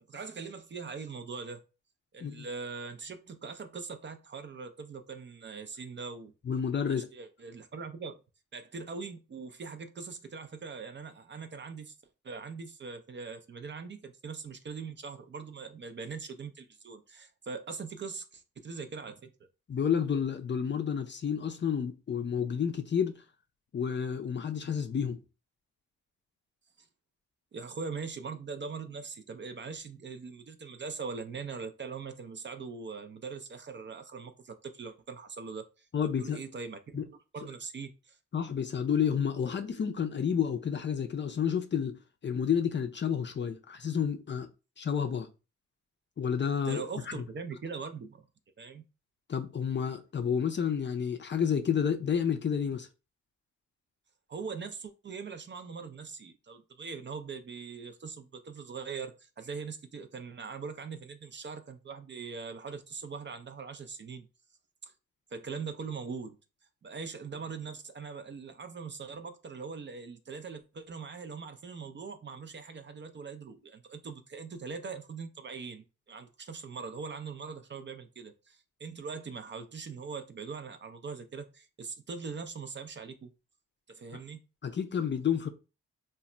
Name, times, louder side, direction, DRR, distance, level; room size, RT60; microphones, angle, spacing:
voice 1, 0.1-1.6 2.1-6.3 6.9-8.2 8.5-11.9 12.2-19.3 26.8-26.9 27.5-37.1 37.3-38.2 46.6-48.2 48.6-48.8 54.3-64.3 64.8-64.9 65.3-66.4 66.8-83.3 83.9-84.4, right 5 dB, 35° right, 0.4 m, -41 dB
voice 2, 6.5-7.1 19.7-23.1 23.7-25.2 35.9-36.4 36.9-37.0 38.3-44.5 44.8-45.3 46.2-46.8 49.3-52.9 84.6-85.5, left 7 dB, 35° left, 0.5 m, -30 dB
2.2 x 2.0 x 3.8 m
supercardioid pair, 55°, 33 cm